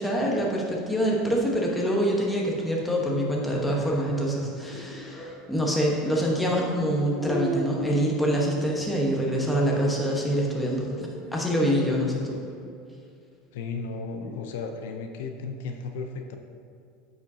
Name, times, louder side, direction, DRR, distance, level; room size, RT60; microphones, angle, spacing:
voice 1, 0.0-12.4, equal, 5° left, -2 dB, 1.2 m, -25 dB
sound 1, 3.6-5.5 6.3-6.6 7.2-11.8 12.5-12.6 14.2-14.4, equal, 40° left, 1.6 m, -37 dB
voice 2, 13.5-16.4, left 4 dB, 80° left, 4 dB, 0.5 m, -34 dB
9.0 x 5.1 x 2.8 m, 2.5 s
supercardioid pair, 130°, 0 cm